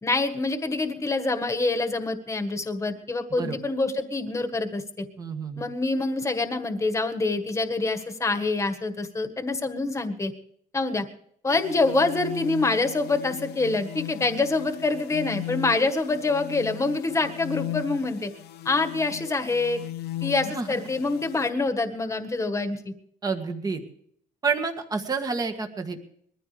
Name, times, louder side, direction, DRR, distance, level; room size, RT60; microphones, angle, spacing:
voice 1, 0.0-5.0 5.6-10.3 10.7-11.0 11.4-18.3 18.6-19.8 20.2-22.9, left 3 dB, 15° left, 7 dB, 1.7 m, -26 dB
voice 2, 5.2-5.6 20.5-20.7 23.2-23.8 24.4-26.0, right 4 dB, 20° right, 5 dB, 1.7 m, -29 dB
sound 1, 11.5-21.5, left 14 dB, 75° left, 1.0 m, -37 dB
22.0 x 14.5 x 3.4 m, 0.65 s
cardioid pair, 160°, 17 cm